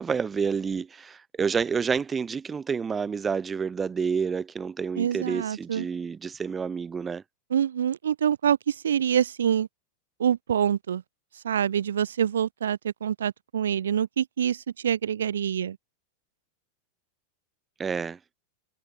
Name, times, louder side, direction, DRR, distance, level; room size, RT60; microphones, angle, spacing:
voice 1, 0.0-7.2 17.8-18.2, right 6 dB, 15° right, 1.7 m, -29 dB
voice 2, 5.0-5.9 7.5-9.7 10.2-11.0 11.4-15.8, right 9 dB, 65° right, 0.8 m, -26 dB
figure-of-eight pair, 90°, 0 cm